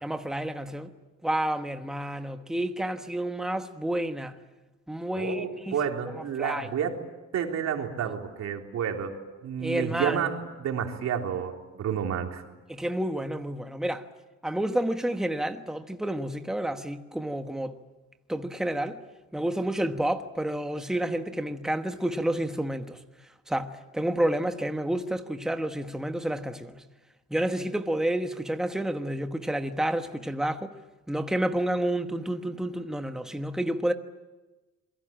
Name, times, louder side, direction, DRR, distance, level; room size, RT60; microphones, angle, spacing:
voice 1, 0.0-0.9 1.2-4.4 4.9-5.8 6.2-6.7 9.6-10.2 12.7-14.1 14.4-17.8 18.3-19.0 19.3-23.0 23.5-26.8 27.3-30.8 31.1-33.9, right 1 dB, ahead, 1.2 m, -30 dB
voice 2, 5.2-7.0 7.3-12.4, right 8 dB, 65° right, 3.7 m, -30 dB
27.0 x 23.0 x 8.9 m
cardioid pair, 165°, 29 cm